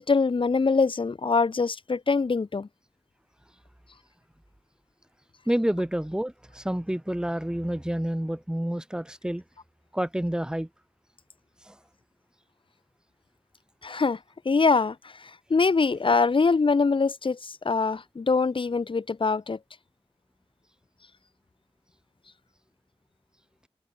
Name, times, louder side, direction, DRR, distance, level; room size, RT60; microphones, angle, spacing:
voice 1, 0.0-2.7 13.8-14.2 14.4-14.9 15.5-19.6, left 4 dB, 55° left, 1.6 m, -23 dB
voice 2, 5.5-9.4 9.9-10.7 11.6-11.8, right 1 dB, 5° right, 5.7 m, -29 dB
wide cardioid pair, 110°, 11 cm